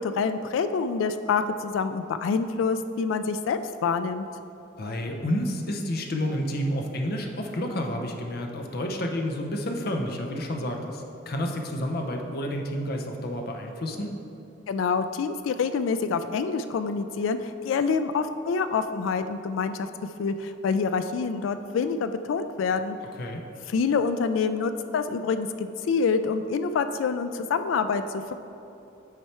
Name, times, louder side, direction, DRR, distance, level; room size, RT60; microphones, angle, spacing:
voice 1, 0.0-4.3 14.7-19.9 20.2-23.0 23.7-28.2, left 5 dB, 80° left, 10 dB, 0.3 m, -26 dB
voice 2, 4.8-14.1 23.2-23.4, equal, 55° left, 2 dB, 0.7 m, -30 dB
8.3 x 4.6 x 4.3 m, 2.8 s
head